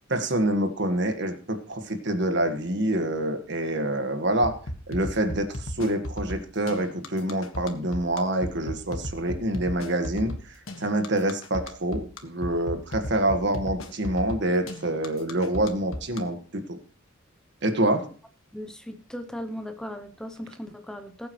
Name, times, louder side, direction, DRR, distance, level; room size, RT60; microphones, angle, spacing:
voice 1, 0.1-4.5 4.9-10.3 10.8-16.8 17.6-18.1, right 1 dB, 55° right, 6 dB, 1.7 m, -26 dB
sound 1, 4.4-16.2, left 1 dB, 80° left, 1.6 m, -35 dB
voice 2, 18.5-21.3, equal, 5° left, 8 dB, 0.7 m, -37 dB
20.5 x 8.7 x 3.2 m, 0.41 s
head